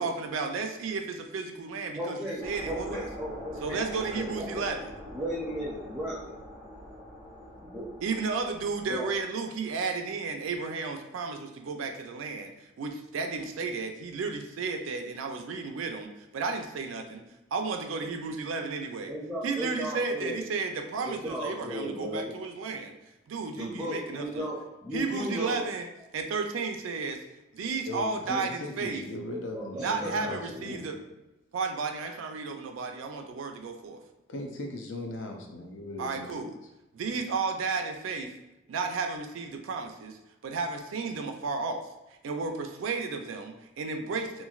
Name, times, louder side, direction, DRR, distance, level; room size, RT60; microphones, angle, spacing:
voice 1, 0.0-3.0 3.6-4.9 8.0-12.5 12.8-17.2 17.5-19.1 19.4-22.9 23.3-24.5 24.9-25.9 26.1-27.2 27.5-29.0 29.7-31.0 31.5-34.0 36.0-36.5 36.9-38.3 38.7-40.2 40.4-41.8 42.2-44.4, right 4 dB, 90° right, 5 dB, 0.4 m, -33 dB
voice 2, 1.9-4.7 5.1-6.4 7.6-7.9 8.8-9.1 19.1-20.4 21.0-22.3 23.5-25.7 29.5-30.8 32.0-32.2, equal, 5° right, -6 dB, 0.4 m, -36 dB
sound 1, 2.4-9.2, left 1 dB, 35° left, 1.2 m, -44 dB
voice 3, 27.6-30.9 34.3-36.4 37.2-37.3, left 1 dB, 75° left, 3 dB, 0.5 m, -38 dB
3.0 x 2.5 x 2.3 m, 0.97 s
head